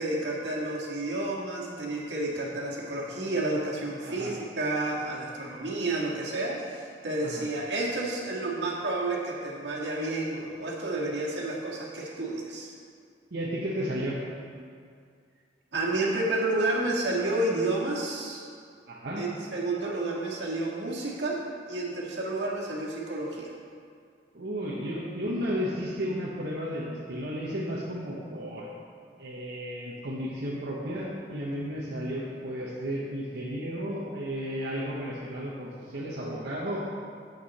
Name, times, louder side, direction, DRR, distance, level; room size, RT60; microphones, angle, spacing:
voice 1, 0.0-12.7 15.7-18.4 19.2-23.5, right 2 dB, 80° right, -4 dB, 1.9 m, -30 dB
voice 2, 13.3-14.2 18.9-19.2 24.3-28.7 29.2-36.9, equal, 60° right, -6 dB, 1.1 m, -33 dB
9.4 x 7.9 x 4.2 m, 2.2 s
head